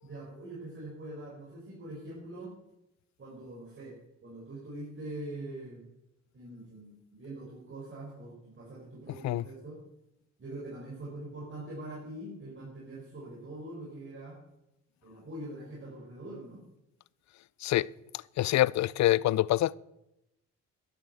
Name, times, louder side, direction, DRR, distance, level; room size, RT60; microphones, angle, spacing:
voice 1, 0.0-2.5 3.2-5.8 6.3-9.8 10.4-14.4 15.0-16.6, right 1 dB, 40° right, 5.8 m, -43 dB
voice 2, 18.4-19.8, left 15 dB, 65° left, 0.5 m, -25 dB
12.0 x 10.5 x 7.9 m
cardioid pair, 90°, 30 cm